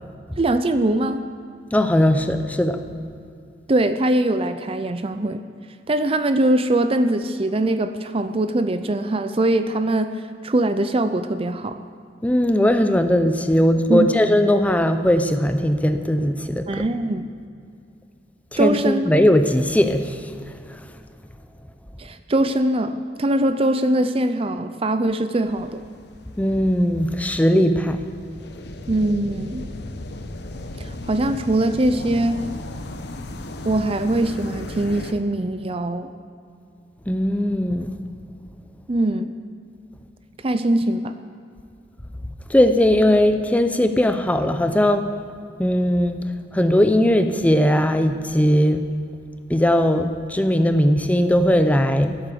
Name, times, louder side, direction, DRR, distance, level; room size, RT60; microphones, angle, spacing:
voice 1, 0.4-1.2 3.7-5.4 5.9-10.1 10.4-11.8 13.9-14.1 16.7-17.3 18.6-19.1 22.0-25.8 28.9-29.7 30.8-32.4 33.6-36.1 38.9-39.3 40.4-41.1, right 1 dB, 30° right, 10 dB, 0.5 m, -22 dB
voice 2, 1.7-2.8 12.2-16.8 18.5-20.2 26.4-28.0 37.1-38.0 42.5-45.1 45.6-46.2 46.5-48.9 49.5-52.2, left 1 dB, 10° left, 8 dB, 0.6 m, -19 dB
sound 1, 25.4-35.1, left 1 dB, 65° left, 0.9 m, -36 dB
16.0 x 8.6 x 6.8 m, 2.4 s
head